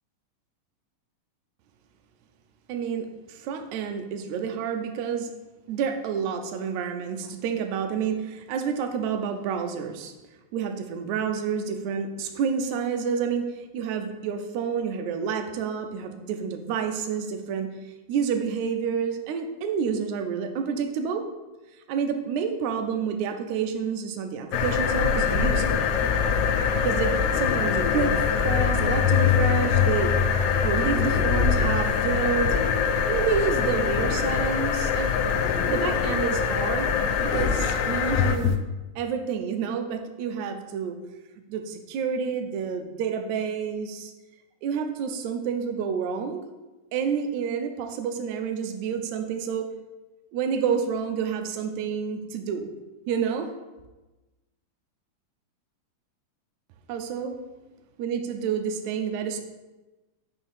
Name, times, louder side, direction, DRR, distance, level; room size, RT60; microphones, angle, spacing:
voice 1, 2.7-5.3 5.7-10.1 10.5-13.5 13.7-17.7 18.1-21.2 21.9-25.7 26.8-30.1 30.6-32.6 33.1-35.2 35.7-36.9 37.2-38.6 39.0-41.0 41.5-44.1 44.6-46.4 46.9-49.7 50.3-52.7 53.1-53.5 56.9-57.4 58.0-59.4, right 6 dB, 75° right, 5 dB, 1.9 m, -29 dB
sound 1, 24.5-38.6, left 7 dB, 80° left, 1.8 m, -23 dB
5.7 x 4.4 x 5.4 m, 1.1 s
omnidirectional pair, 3.6 m